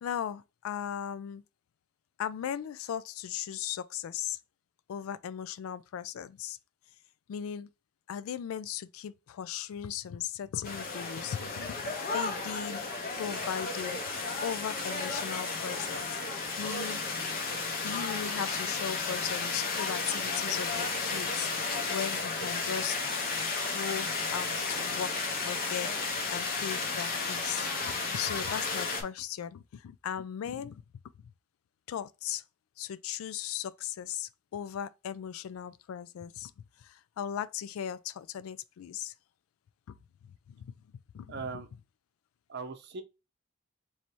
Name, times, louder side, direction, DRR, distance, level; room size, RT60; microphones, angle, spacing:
voice 1, 0.0-1.4 2.2-4.4 4.9-6.6 7.3-7.7 8.1-12.8 13.1-14.0 14.4-17.0 17.8-23.0 23.7-25.9 26.3-30.8 31.9-32.4 32.8-36.5 36.8-39.1 39.9-40.0 40.2-40.7 41.1-41.6, left 9 dB, 85° left, 0.3 m, -37 dB
sound 1, 10.6-29.0, left 4 dB, 45° left, 0.8 m, -33 dB
voice 2, 41.3-41.7 42.5-43.0, right 4 dB, 55° right, 0.6 m, -39 dB
3.2 x 2.7 x 4.4 m
head